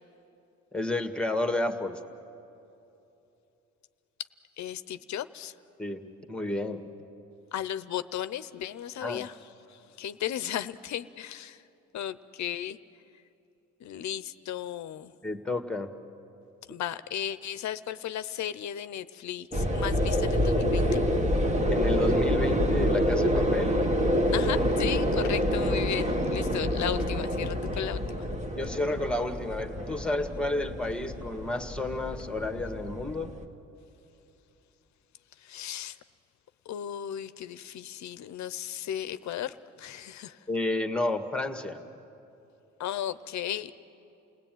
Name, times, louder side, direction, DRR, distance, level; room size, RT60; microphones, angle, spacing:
voice 1, 0.7-2.0 5.8-6.8 9.0-9.2 15.2-15.9 21.7-23.8 25.2-25.3 28.5-33.3 40.5-41.8, left 2 dB, 5° left, 7 dB, 1.7 m, -31 dB
voice 2, 4.6-5.5 7.5-11.6 11.9-12.8 13.8-15.1 16.7-21.0 24.3-28.3 35.4-36.0 36.7-40.4 42.8-43.7, left 10 dB, 70° left, 14 dB, 0.8 m, -35 dB
sound 1, 19.5-33.4, equal, 25° right, 1.6 m, -27 dB
29.0 x 18.0 x 9.2 m, 2.9 s
cardioid pair, 90°, 30 cm